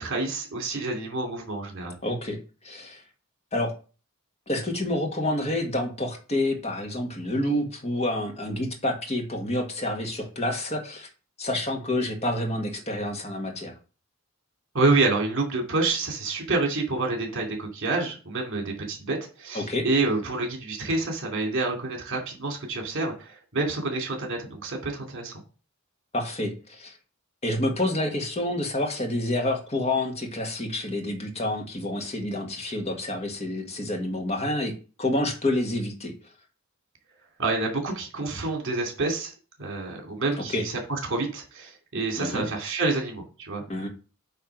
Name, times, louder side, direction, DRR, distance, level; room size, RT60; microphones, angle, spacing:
voice 1, 0.0-1.9 14.7-25.3 37.4-39.3 39.6-43.6, right 3 dB, 60° right, 1 dB, 2.6 m, -28 dB
voice 2, 2.0-2.4 2.6-3.0 3.5-3.7 4.5-11.1 11.4-13.7 19.5-19.9 26.1-27.0 27.4-34.7 35.0-36.1 40.5-40.6 42.2-42.5 43.7-43.9, left 1 dB, 30° left, 2 dB, 1.7 m, -28 dB
9.0 x 3.4 x 6.0 m, 0.35 s
head